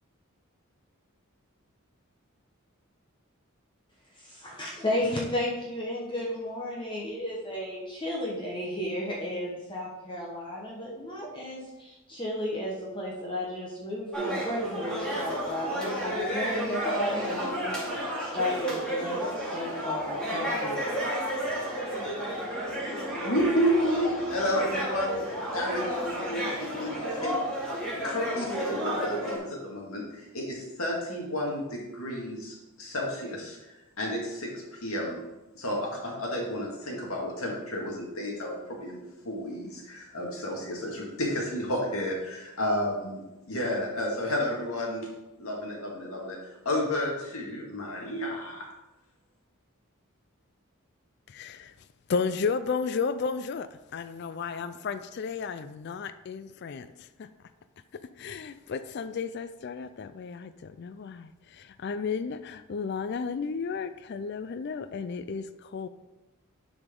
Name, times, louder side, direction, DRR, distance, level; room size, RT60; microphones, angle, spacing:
voice 1, 4.2-20.9, left 1 dB, 20° left, -3 dB, 1.1 m, -33 dB
sound 1, 14.1-29.4, equal, 5° left, 2.4 m, -32 dB
voice 2, 23.2-25.2 25.5-27.4 28.0-33.6 34.0-35.2 35.5-43.2 43.5-45.1 45.4-46.4 46.6-48.7, equal, 80° left, -1 dB, 2.1 m, -31 dB
voice 3, 51.3-51.7 52.1-53.7 53.9-57.3 58.2-65.9, left 5 dB, 50° left, 12 dB, 0.4 m, -33 dB
10.5 x 5.0 x 3.7 m, 1.0 s
head